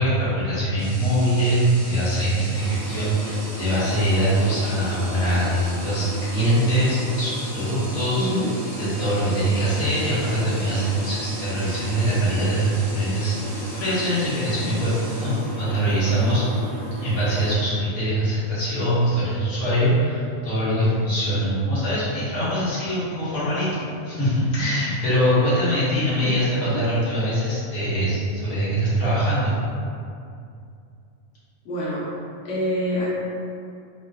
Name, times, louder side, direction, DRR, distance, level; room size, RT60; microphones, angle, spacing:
voice 1, 0.0-8.3 8.8-16.4 17.0-29.6, equal, 85° left, -11 dB, 1.5 m, -23 dB
sound 1, 0.8-15.8, right 1 dB, 85° right, 1.4 m, -40 dB
sound 2, 2.5-17.5, right 1 dB, 65° right, 0.8 m, -35 dB
voice 2, 8.1-8.5 26.2-26.8 31.6-32.0 32.4-33.1, equal, 60° left, -9 dB, 1.1 m, -26 dB
3.6 x 2.4 x 2.3 m, 2.4 s
omnidirectional pair, 1.5 m